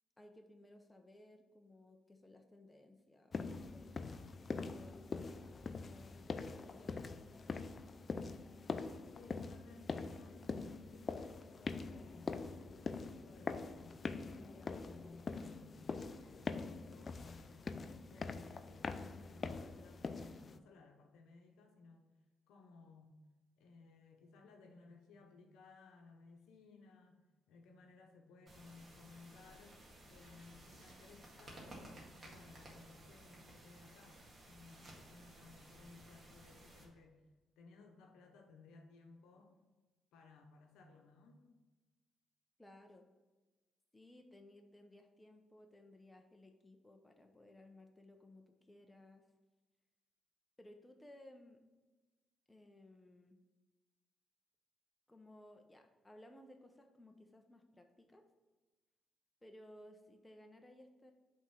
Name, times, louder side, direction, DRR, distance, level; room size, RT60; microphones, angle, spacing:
voice 1, 0.2-7.7 42.6-43.1 43.9-49.3 50.6-51.6 52.5-53.4 55.1-58.2 59.4-61.1, left 1 dB, 15° left, 4 dB, 0.8 m, -60 dB
sound 1, 3.3-20.6, left 4 dB, 40° left, 0.3 m, -44 dB
voice 2, 9.1-22.1 22.5-23.2 23.6-27.2 27.5-37.2 37.6-39.6 40.1-41.4, left 3 dB, 90° left, 3 dB, 0.9 m, -60 dB
sound 2, 28.5-36.8, right 1 dB, 35° right, 1.7 m, -57 dB
5.4 x 3.7 x 5.8 m, 1.2 s
cardioid pair, 90°, 0 cm